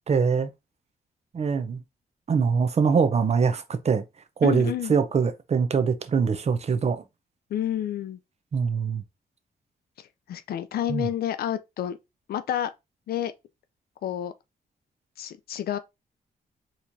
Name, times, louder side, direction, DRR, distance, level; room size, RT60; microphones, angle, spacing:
voice 1, 0.1-0.5 1.3-1.8 2.3-4.0 4.4-7.0 8.5-9.0 10.9-11.1, right 5 dB, 45° right, 0.6 m, -23 dB
voice 2, 4.4-5.0 7.5-8.2 10.0-12.0 12.3-12.7 13.1-13.3 14.0-14.3 15.2-15.8, left 11 dB, 80° left, 0.5 m, -29 dB
4.0 x 3.0 x 2.6 m
cardioid pair, 80°, 16 cm